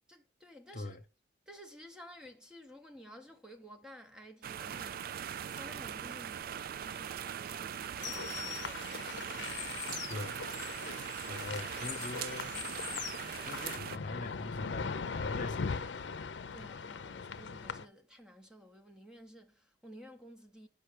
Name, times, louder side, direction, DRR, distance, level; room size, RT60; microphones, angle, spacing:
voice 1, 0.1-1.0 1.5-10.0 10.8-11.2 16.5-20.7, equal, 5° right, 0.7 m, -54 dB
sound 1, 4.4-14.0, right 9 dB, 55° right, 0.3 m, -41 dB
sound 2, 8.0-17.9, left 6 dB, 85° left, 0.6 m, -40 dB
voice 2, 11.2-12.6 13.4-16.1, left 2 dB, 50° left, 0.9 m, -43 dB
5.7 x 5.5 x 5.0 m
head